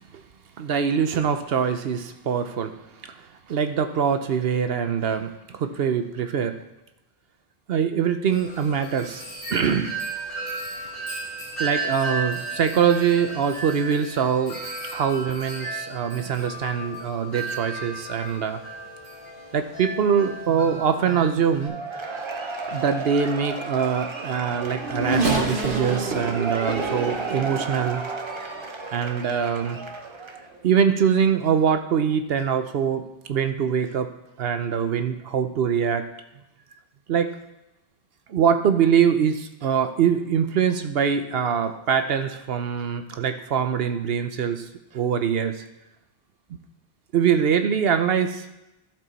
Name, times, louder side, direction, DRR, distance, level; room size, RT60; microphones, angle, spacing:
voice 1, 0.6-2.7 3.0-6.6 7.7-9.2 9.5-10.3 11.6-14.6 14.9-18.6 19.5-21.8 22.7-28.0 28.9-29.8 30.6-34.1 34.4-36.1 37.1-37.4 38.3-45.6 47.1-48.5, right 7 dB, 75° right, 8 dB, 0.9 m, -23 dB
Wind chime, 8.3-21.7, right 2 dB, 55° left, 2.3 m, -34 dB
Cheering / Applause / Crowd, 21.6-30.5, right 3 dB, 30° right, 0.8 m, -34 dB
Race car auto racing / Accelerating revving vroom, 24.1-28.6 29.3-29.4 30.6-30.7, right 2 dB, 55° right, 1.5 m, -28 dB
12.0 x 6.7 x 4.1 m, 0.91 s
omnidirectional pair, 1.0 m